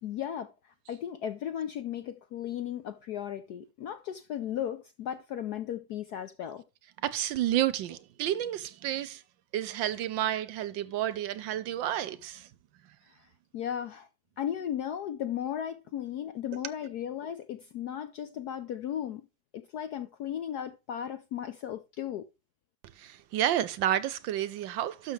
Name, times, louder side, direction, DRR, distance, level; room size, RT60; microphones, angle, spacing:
voice 1, 0.0-6.6 13.1-13.3 13.5-14.1 14.4-19.2 19.5-22.3, left 10 dB, 70° left, 0.9 m, -36 dB
voice 2, 7.0-9.2 9.5-12.5 23.0-25.1, right 12 dB, 75° right, 1.2 m, -30 dB
12.0 x 6.3 x 3.2 m
omnidirectional pair, 2.3 m